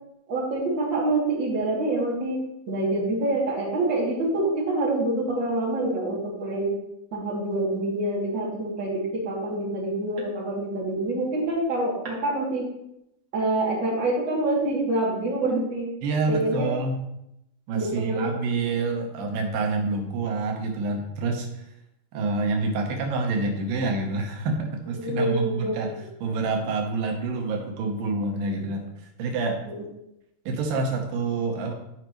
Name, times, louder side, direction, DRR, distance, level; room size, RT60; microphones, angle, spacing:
voice 1, 0.3-6.7 7.1-12.7 13.3-15.9 16.3-16.7 17.7-18.2 25.0-25.8 29.6-29.8, right 2 dB, 35° right, -5 dB, 3.0 m, -26 dB
voice 2, 16.0-17.0 17.7-21.7 22.1-25.9 26.2-29.6 30.5-31.7, right 3 dB, 90° right, 2 dB, 2.8 m, -27 dB
14.5 x 5.1 x 3.1 m, 0.82 s
omnidirectional pair, 3.8 m